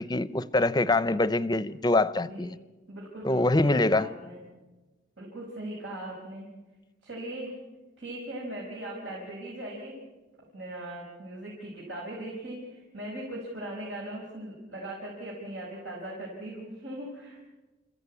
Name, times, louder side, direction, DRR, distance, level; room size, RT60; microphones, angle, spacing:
voice 1, 0.0-2.6 3.2-4.1, left 2 dB, 20° left, 17 dB, 0.6 m, -24 dB
voice 2, 2.9-4.4 5.2-6.5 7.0-7.5 8.0-10.0 10.5-17.4, right 1 dB, 85° right, -4 dB, 5.5 m, -39 dB
29.0 x 15.0 x 8.4 m, 1.2 s
head